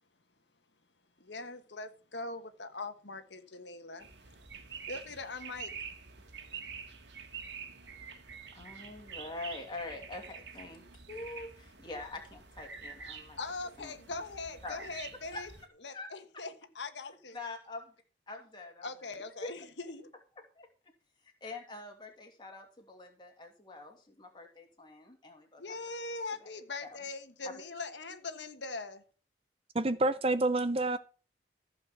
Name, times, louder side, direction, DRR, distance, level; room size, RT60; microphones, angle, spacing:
voice 1, 1.2-4.1 4.9-5.7 13.4-15.5 15.8-17.4 18.8-20.1 25.6-29.0, left 3 dB, 80° left, 1.6 m, -41 dB
sound 1, 4.0-15.6, right 6 dB, 80° right, 2.1 m, -47 dB
voice 2, 8.5-13.4 13.8-14.0 14.6-14.9 15.3-15.4 15.9-16.1 17.3-17.9 18.3-19.5 20.6-20.7 21.2-25.6 26.4-26.5 26.8-26.9 27.4-27.5, left 3 dB, 25° left, 2.6 m, -45 dB
voice 3, 29.7-31.0, right 2 dB, 30° right, 0.6 m, -28 dB
15.0 x 5.3 x 7.2 m
head